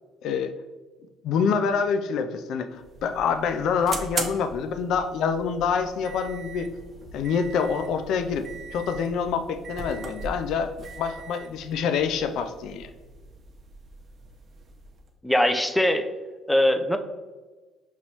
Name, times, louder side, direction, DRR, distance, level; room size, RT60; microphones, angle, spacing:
voice 1, 0.2-0.5 1.2-6.7 7.1-12.9, left 6 dB, 75° left, 8 dB, 0.3 m, -26 dB
sound 1, 2.7-15.1, right 3 dB, 45° right, 0.7 m, -40 dB
voice 2, 15.2-16.1 16.5-17.0, left 1 dB, 5° left, 8 dB, 0.4 m, -21 dB
5.3 x 3.0 x 2.8 m, 1.3 s
cardioid pair, 85°, 0 cm